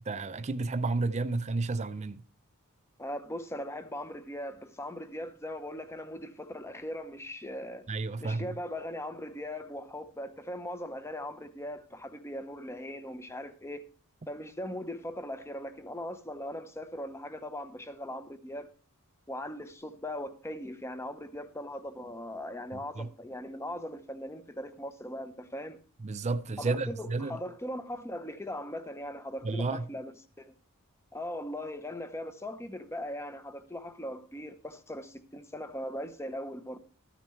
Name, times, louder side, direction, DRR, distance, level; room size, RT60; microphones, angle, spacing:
voice 1, 0.1-2.2 7.9-8.6 22.7-23.1 26.0-27.4 29.4-29.9, right 3 dB, 30° right, 0.5 m, -32 dB
voice 2, 3.0-7.9 8.2-13.8 14.3-18.7 19.3-25.8 26.6-30.1 30.4-30.5 31.1-36.8, left 1 dB, 10° left, 0.8 m, -39 dB
13.5 x 9.0 x 3.2 m
head